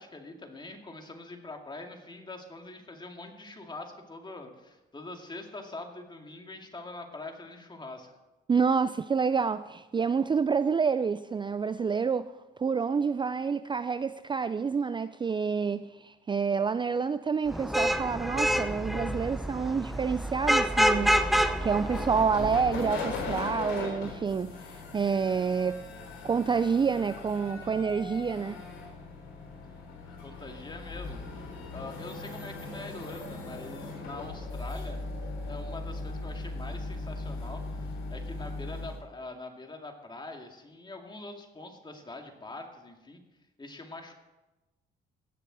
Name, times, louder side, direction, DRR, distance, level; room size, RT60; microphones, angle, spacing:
voice 1, 0.0-8.1 30.0-31.2 31.7-35.1 35.4-43.2 43.6-44.1, left 2 dB, 20° left, 2.3 m, -44 dB
voice 2, 8.5-12.3 12.6-21.2 21.6-24.6 24.9-25.8 26.2-28.6, right 5 dB, 25° right, 0.4 m, -28 dB
Vehicle horn car horn honking / Traffic noise roadway noise, 17.5-22.8, equal, ahead, 0.8 m, -27 dB
sound 1, 21.7-39.0, left 3 dB, 85° left, 4.0 m, -39 dB
Bird, 30.4-38.2, right 1 dB, 70° right, 3.7 m, -51 dB
17.0 x 6.9 x 6.2 m
cardioid pair, 90°, 20 cm